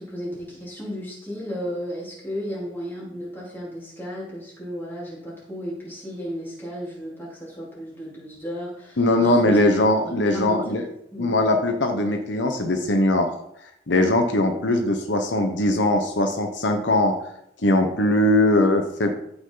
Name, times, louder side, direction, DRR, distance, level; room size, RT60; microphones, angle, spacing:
voice 1, 0.0-9.6 10.0-10.9 11.1-11.3, equal, 10° left, -6 dB, 4.0 m, -34 dB
voice 2, 9.0-10.9 11.2-13.3 13.9-17.1 17.6-19.1, left 1 dB, 80° left, 5 dB, 1.2 m, -20 dB
14.5 x 6.0 x 4.0 m, 0.73 s
head